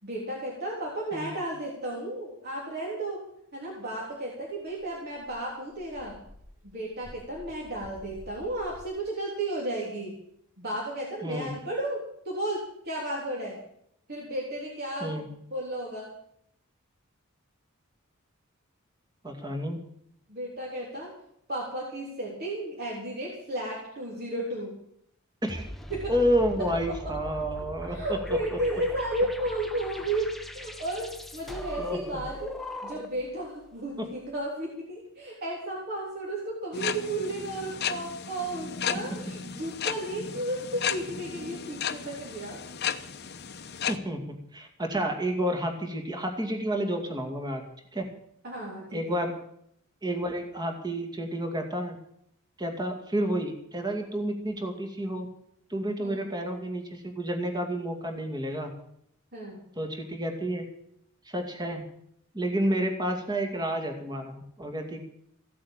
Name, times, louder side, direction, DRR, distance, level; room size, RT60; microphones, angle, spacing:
voice 1, 0.0-3.2 3.5-6.2 6.7-10.2 10.6-13.6 14.1-16.1 20.3-21.1 21.5-24.7 25.9-26.1 26.6-27.1 27.9-32.5 32.8-42.6 48.4-49.0 56.0-56.2 59.3-59.6, right 1 dB, 50° right, -3 dB, 3.5 m, -33 dB
Dog, 4.7-8.8, equal, 65° right, 4.0 m, -51 dB
voice 2, 19.2-19.8 25.4-25.6 26.1-28.2 31.8-32.0 34.0-34.1 43.9-44.2 44.5-47.6 47.9-48.0 48.9-49.3 50.0-52.0 52.6-55.3 55.7-58.7 59.8-60.7 61.3-61.8 62.3-65.0, right 1 dB, 20° right, 4 dB, 2.3 m, -30 dB
sound 1, 25.5-33.3, left 1 dB, ahead, 1.0 m, -40 dB
sound 2, 36.7-44.0, left 7 dB, 50° left, 0.9 m, -34 dB
16.0 x 8.6 x 8.9 m, 0.71 s
head